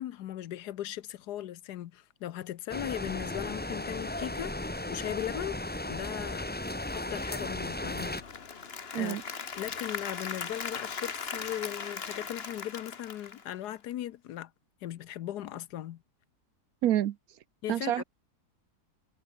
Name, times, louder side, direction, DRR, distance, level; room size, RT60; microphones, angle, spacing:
voice 1, 0.0-6.5 6.9-8.6 8.9-9.2 9.6-14.5 14.8-16.0 17.6-18.0, left 12 dB, 80° left, 1.3 m, -38 dB
sound 1, 2.7-8.2, left 1 dB, 10° left, 0.6 m, -36 dB
Applause / Crowd, 7.9-13.9, left 5 dB, 40° left, 1.5 m, -39 dB
voice 2, 16.8-17.2 17.7-18.0, right 12 dB, 70° right, 1.1 m, -27 dB
omnidirectional pair, 1.7 m